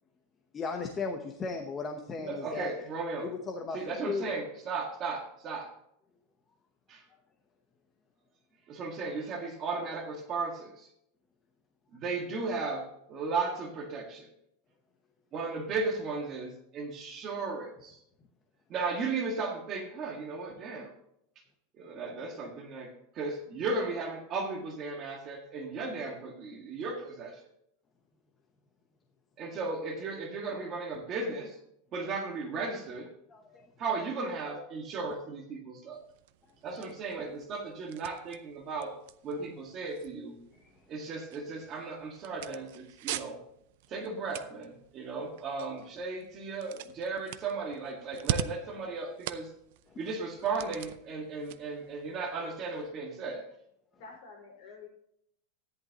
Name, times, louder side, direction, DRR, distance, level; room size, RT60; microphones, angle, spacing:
voice 1, 0.5-2.7 3.2-3.8 4.1-4.2 33.3-33.7 36.7-36.8 40.6-40.7, left 4 dB, 15° left, 4 dB, 0.8 m, -36 dB
voice 2, 2.2-3.3 3.7-5.7 6.9-7.0 8.7-10.9 11.9-14.3 15.3-18.0 18.7-20.9 21.8-27.4 29.4-31.6 31.9-33.1 33.8-36.0 36.6-39.0 39.2-40.4 40.9-43.4 43.9-49.5 50.0-53.4, right 4 dB, 25° right, 2 dB, 1.6 m, -35 dB
sound 1, 35.9-52.9, right 11 dB, 55° right, 0.6 m, -43 dB
voice 3, 54.0-54.9, left 4 dB, 50° left, 0 dB, 4.6 m, -49 dB
14.0 x 10.5 x 2.9 m, 0.74 s
supercardioid pair, 180°, 0 cm